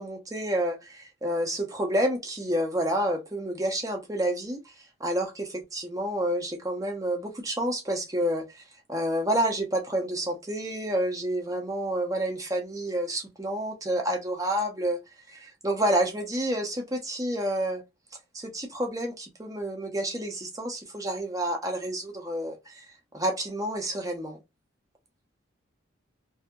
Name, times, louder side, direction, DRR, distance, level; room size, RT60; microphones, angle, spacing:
voice 1, 0.0-8.6 8.9-15.0 15.3-17.8 18.3-24.4, right 1 dB, 15° right, 0.6 m, -29 dB
2.7 x 2.6 x 2.3 m
head